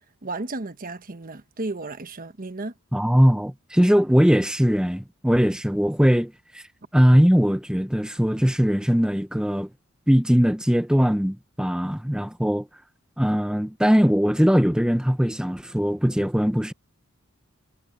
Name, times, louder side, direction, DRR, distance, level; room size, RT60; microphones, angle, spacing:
voice 1, 0.2-2.7, right 2 dB, 45° right, 1.1 m, -33 dB
voice 2, 2.9-6.6 6.9-9.7 10.1-12.7 13.2-16.7, equal, 5° right, 0.8 m, -20 dB
head